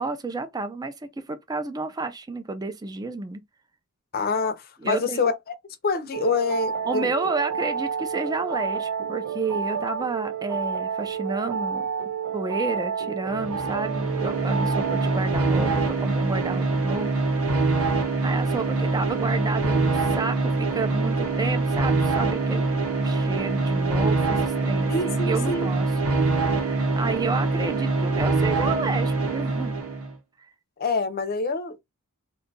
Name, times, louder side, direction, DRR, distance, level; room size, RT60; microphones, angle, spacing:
voice 1, 0.0-3.4 4.8-5.2 6.9-11.8 12.3-17.1 18.2-22.7 23.0-25.9 26.5-29.8 30.4-30.5, right 3 dB, 15° right, 0.4 m, -31 dB
voice 2, 4.1-5.5 5.8-7.1 24.9-25.7 30.8-31.8, left 4 dB, 45° left, 0.6 m, -26 dB
sound 1, 6.1-15.3, right 6 dB, 90° right, 0.3 m, -30 dB
sound 2, 13.3-30.1, right 3 dB, 75° right, 0.8 m, -24 dB
2.7 x 2.3 x 3.9 m
head